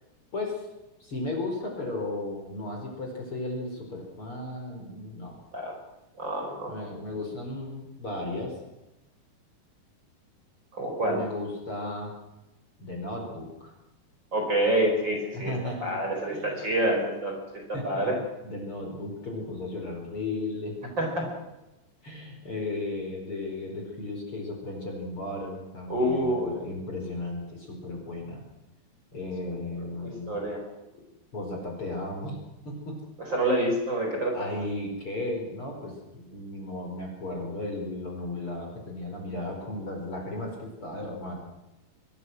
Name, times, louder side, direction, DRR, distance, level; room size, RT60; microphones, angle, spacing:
voice 1, 0.3-0.7 1.0-5.4 6.7-8.5 11.1-12.2 12.8-13.7 15.3-16.0 16.3-16.5 17.7-20.9 22.0-28.4 29.1-30.4 31.3-32.4 32.6-33.0 34.3-41.4, left 2 dB, 30° left, 1 dB, 5.3 m, -35 dB
voice 2, 6.2-6.7 10.7-11.2 14.3-15.5 15.8-18.2 21.0-21.2 25.9-26.6 29.5-29.6 30.0-30.6 33.3-34.5, right 1 dB, 25° right, 1 dB, 5.1 m, -27 dB
24.0 x 21.5 x 6.2 m, 0.98 s
omnidirectional pair, 5.0 m